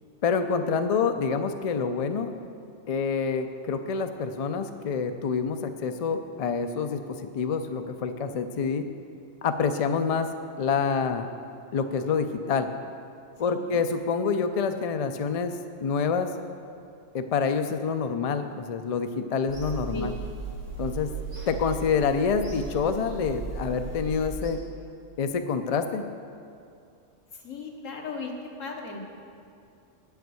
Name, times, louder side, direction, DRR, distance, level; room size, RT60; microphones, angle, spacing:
voice 1, 0.2-2.3 2.9-8.9 9.4-10.3 10.6-11.3 11.7-12.7 13.4-15.5 15.8-16.3 17.1-20.1 20.8-21.1 21.5-24.6 25.2-26.0, left 5 dB, 65° left, 8 dB, 0.3 m, -27 dB
voice 2, 13.4-13.9 19.9-20.1 27.3-29.0, left 3 dB, 80° left, 2 dB, 1.5 m, -37 dB
Bird vocalization bird call bird song / Telephone, 19.5-24.5, right 3 dB, 65° right, 2.3 m, -37 dB
8.9 x 5.7 x 7.6 m, 2.4 s
omnidirectional pair, 1.3 m